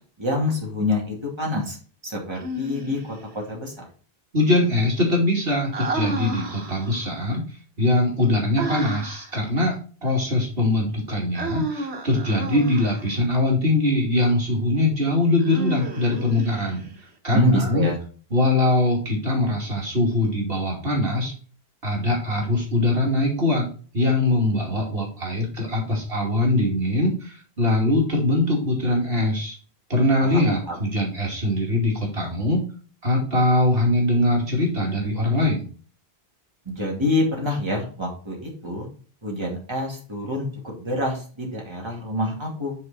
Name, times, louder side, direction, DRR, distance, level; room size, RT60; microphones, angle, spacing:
voice 1, 0.2-1.8 2.0-3.9 17.3-18.0 30.2-30.4 30.7-30.8 36.7-38.9 39.2-42.8, left 1 dB, 25° right, -2 dB, 2.6 m, -26 dB
Human voice, 2.3-3.2 5.7-7.1 8.6-9.4 11.3-13.1 15.4-17.0, right 1 dB, 85° right, 1.8 m, -31 dB
voice 2, 4.3-7.4 7.8-9.8 10.0-16.8 17.2-17.9 18.3-21.3 21.8-23.7 23.9-29.5 29.9-32.6 33.0-35.6, left 1 dB, 65° right, -2 dB, 2.9 m, -22 dB
9.5 x 4.6 x 4.2 m, 0.40 s
omnidirectional pair, 1.1 m